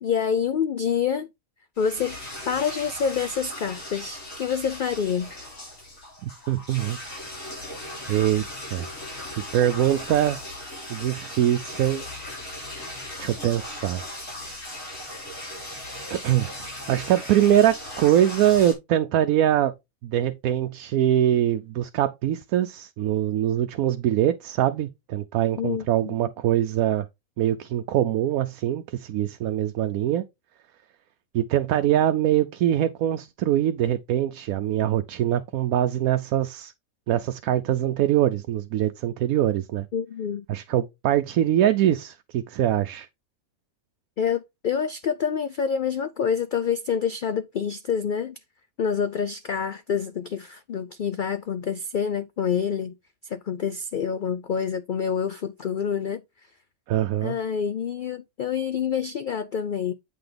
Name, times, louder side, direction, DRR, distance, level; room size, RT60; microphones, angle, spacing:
voice 1, 0.0-1.3 1.8-2.2 2.5-5.3 25.6-26.1 39.9-40.4 44.2-48.4 48.8-52.9 53.2-56.2 57.2-59.9, left 7 dB, 90° left, 0.4 m, -27 dB
sound 1, 1.8-18.7, left 1 dB, 65° left, 5.1 m, -38 dB
voice 2, 6.2-7.0 8.1-8.5 8.7-8.9 9.4-10.4 10.9-12.0 13.2-14.0 14.9-15.2 16.1-16.5 16.9-19.7 20.0-27.1 27.4-30.2 31.3-36.7 37.1-39.9 40.5-43.1 56.9-57.4, right 11 dB, 80° right, 1.0 m, -23 dB
8.4 x 5.8 x 3.3 m
omnidirectional pair, 1.5 m